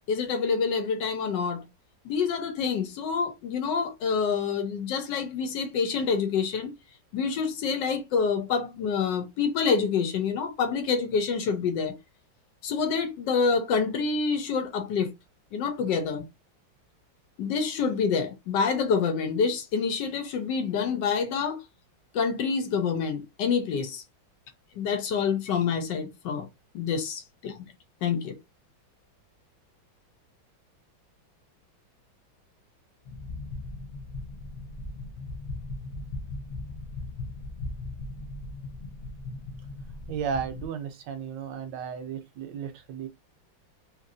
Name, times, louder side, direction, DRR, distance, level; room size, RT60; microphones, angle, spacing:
voice 1, 0.1-1.6 2.0-6.7 7.1-12.0 12.6-15.1 15.5-16.3 17.4-21.6 22.1-24.0 24.8-26.5 26.7-27.6 28.0-28.4, left 5 dB, 75° left, 1.2 m, -27 dB
sound 1, 33.0-40.7, left 2 dB, 55° left, 0.6 m, -38 dB
voice 2, 40.1-43.1, right 7 dB, 75° right, 1.1 m, -34 dB
2.9 x 2.8 x 2.6 m
omnidirectional pair, 2.1 m